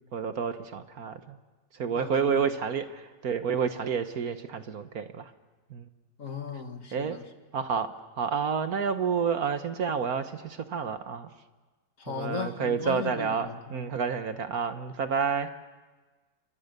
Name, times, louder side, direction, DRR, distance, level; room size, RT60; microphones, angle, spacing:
voice 1, 0.1-1.4 1.7-5.3 5.7-5.9 6.9-7.2 7.5-11.3 12.1-15.5, right 6 dB, 55° right, 9 dB, 1.5 m, -29 dB
voice 2, 1.9-2.4 6.2-7.2 12.0-13.8, left 5 dB, 45° left, 6 dB, 2.3 m, -37 dB
29.5 x 25.0 x 6.7 m, 1.3 s
omnidirectional pair, 1.9 m